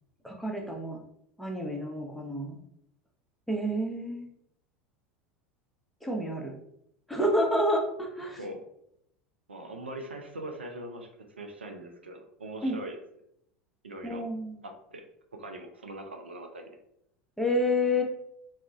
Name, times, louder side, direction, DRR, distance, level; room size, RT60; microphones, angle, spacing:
voice 1, 0.2-1.0 1.4-2.6 3.5-4.3 6.0-6.5 7.1-8.4 12.6-12.8 14.0-14.6 17.4-18.0, left 1 dB, ahead, -1 dB, 0.7 m, -29 dB
voice 2, 9.5-11.1 11.4-13.0 13.8-14.2 14.6-15.0 15.4-16.6, right 1 dB, 85° right, 4 dB, 0.4 m, -41 dB
2.3 x 2.1 x 3.5 m, 0.75 s
figure-of-eight pair, 80°, 6 cm